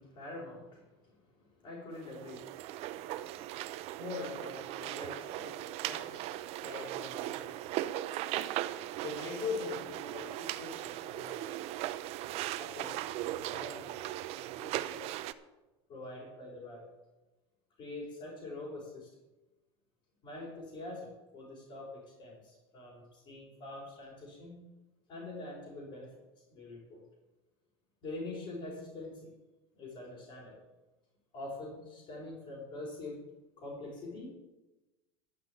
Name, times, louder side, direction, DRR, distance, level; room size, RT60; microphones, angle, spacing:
voice 1, 0.0-2.5 3.3-3.4 4.0-7.5 9.0-11.6 12.6-14.0 14.3-15.0 15.9-16.8 17.8-19.1 20.2-24.6 25.1-26.1 26.5-27.0 28.0-29.3 29.8-30.5 31.3-33.2 33.6-34.3, left 3 dB, 45° left, -6 dB, 5.2 m, -44 dB
sound 1, 1.9-15.3, right 14 dB, 55° right, 0.7 m, -38 dB
12.5 x 5.9 x 8.6 m, 1.1 s
supercardioid pair, 115°, 13 cm